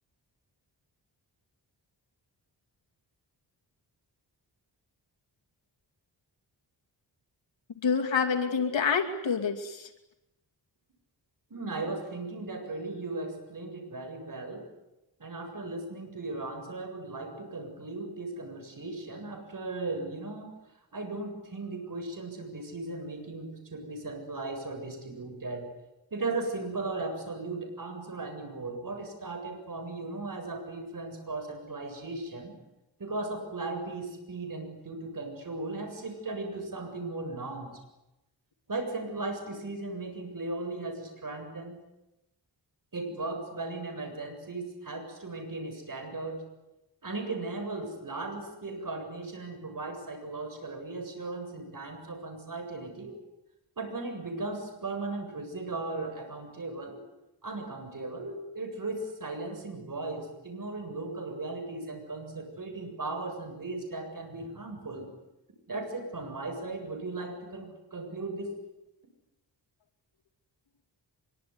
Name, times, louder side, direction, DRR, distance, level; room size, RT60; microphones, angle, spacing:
voice 1, 7.8-9.9, left 6 dB, 85° left, 2 dB, 2.7 m, -27 dB
voice 2, 11.5-14.7 15.2-20.5 20.9-25.7 26.1-32.6 33.0-37.7 38.7-41.8 42.9-46.4 47.0-53.2 53.8-57.0 57.4-65.1 65.7-68.5, right 2 dB, 45° right, 5 dB, 7.7 m, -37 dB
24.5 x 23.0 x 9.7 m, 0.93 s
wide cardioid pair, 80°, 44 cm